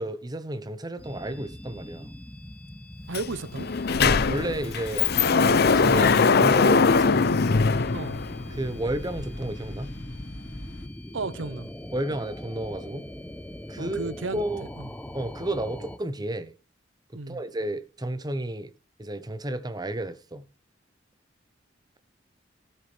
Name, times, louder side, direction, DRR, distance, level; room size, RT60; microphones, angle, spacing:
voice 1, 0.0-2.1 4.0-7.3 8.5-10.0 11.9-13.1 13.7-14.7 15.1-16.5 17.1-18.7 19.0-20.5, right 1 dB, 20° right, 0.9 m, -32 dB
sound 1, 1.0-16.0, left 1 dB, 10° left, 0.8 m, -42 dB
Sliding door, 3.1-3.3 3.6-8.6, left 5 dB, 55° left, 0.6 m, -21 dB
voice 2, 3.1-3.7 7.9-8.2 11.1-11.7 13.8-14.4 14.8-14.9 17.1-17.4, right 3 dB, 85° right, 0.8 m, -33 dB
sound 2, 4.0-10.9, left 1 dB, 75° left, 1.5 m, -42 dB
15.5 x 7.8 x 3.4 m
head